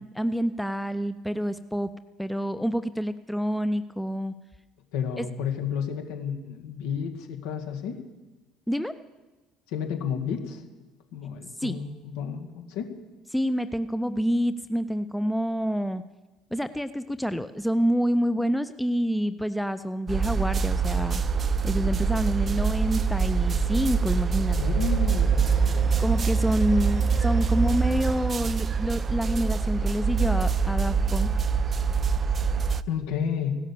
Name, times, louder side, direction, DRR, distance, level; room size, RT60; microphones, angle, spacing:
voice 1, 0.0-1.9 2.2-4.3 5.2-5.3 8.7-9.0 11.6-11.8 13.3-16.0 16.5-21.2 21.6-24.8 26.0-31.3, equal, 5° left, 12 dB, 0.7 m, -27 dB
voice 2, 4.9-8.0 9.7-10.6 11.1-12.9 24.6-25.9 32.9-33.6, left 7 dB, 65° left, 4 dB, 2.1 m, -31 dB
sound 1, 20.1-32.8, right 5 dB, 35° right, 0.6 m, -24 dB
16.5 x 12.5 x 7.0 m, 1.2 s
figure-of-eight pair, 55°, 0 cm